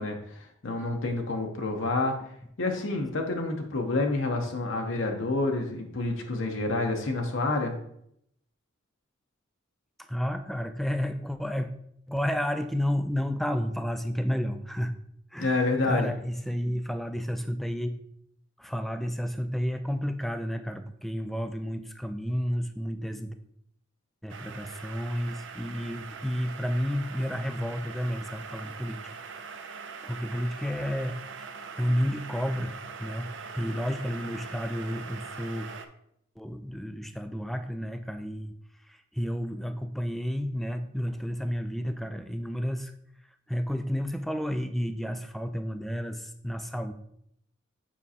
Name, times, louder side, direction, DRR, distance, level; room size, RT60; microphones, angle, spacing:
voice 1, 0.0-2.2 2.6-7.7 15.4-16.1, left 2 dB, 65° left, 3 dB, 0.7 m, -28 dB
voice 2, 10.0-11.7 12.1-14.9 15.3-17.9 18.6-23.3 24.2-29.1 29.5-35.7 36.4-38.5 38.9-42.9 43.5-46.9, equal, ahead, 8 dB, 0.3 m, -31 dB
sound 1, 24.3-35.9, right 5 dB, 60° right, 0.5 m, -42 dB
7.3 x 5.1 x 2.8 m, 0.73 s
head